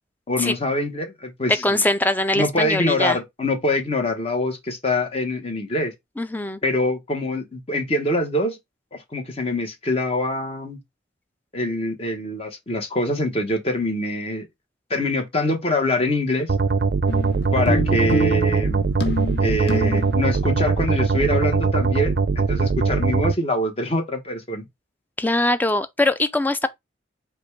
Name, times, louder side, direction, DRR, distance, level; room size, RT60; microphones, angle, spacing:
voice 1, 0.3-1.8 2.3-5.9 6.6-8.6 8.9-10.8 11.5-14.5 14.9-16.5 17.5-18.9 19.4-24.7, left 1 dB, 30° left, 1.0 m, -24 dB
voice 2, 1.5-3.2 6.2-6.6 25.2-26.7, left 2 dB, 10° left, 0.4 m, -22 dB
sound 1, 16.5-23.3, right 4 dB, 50° right, 0.4 m, -21 dB
sound 2, 17.1-20.2, left 2 dB, 55° left, 0.7 m, -27 dB
5.1 x 2.3 x 4.5 m
head